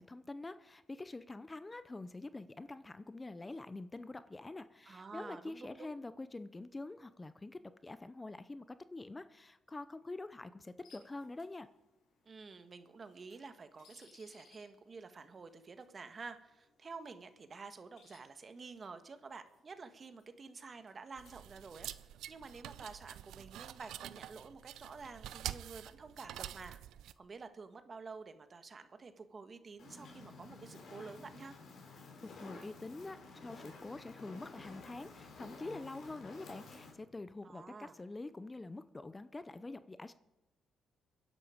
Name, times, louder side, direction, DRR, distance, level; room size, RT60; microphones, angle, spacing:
voice 1, 0.0-11.7 32.0-40.1, left 2 dB, 20° left, 13 dB, 0.6 m, -46 dB
voice 2, 4.8-5.9 12.2-21.9 22.3-26.8 27.2-31.6 37.4-38.0, right 4 dB, 40° right, 9 dB, 1.4 m, -50 dB
sound 1, 10.8-21.8, left 4 dB, 80° left, 5.0 m, -69 dB
sound 2, 21.2-27.1, right 12 dB, 85° right, 0.6 m, -47 dB
Fire, 29.8-36.9, left 3 dB, 65° left, 4.1 m, -52 dB
24.0 x 10.5 x 5.0 m, 0.99 s
cardioid pair, 90°, 0 cm